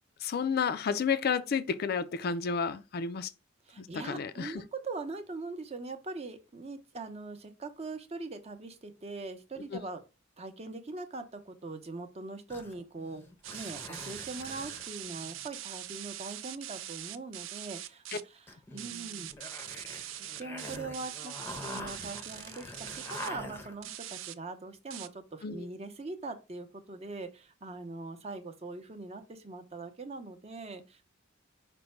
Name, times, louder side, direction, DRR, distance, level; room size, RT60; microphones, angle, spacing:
voice 1, 0.2-3.3 3.8-4.6 9.7-9.8 25.4-25.7, left 6 dB, 50° left, 0.4 m, -31 dB
voice 2, 3.7-10.0 10.4-18.5 18.7-19.3 20.4-31.0, right 3 dB, 30° right, 0.7 m, -42 dB
sound 1, 12.5-15.5 18.5-24.0, left 1 dB, 10° left, 0.6 m, -45 dB
sound 2, 13.4-18.2 18.8-23.3 23.8-24.3 24.9-25.1, right 12 dB, 70° right, 0.4 m, -42 dB
5.1 x 2.2 x 4.4 m
head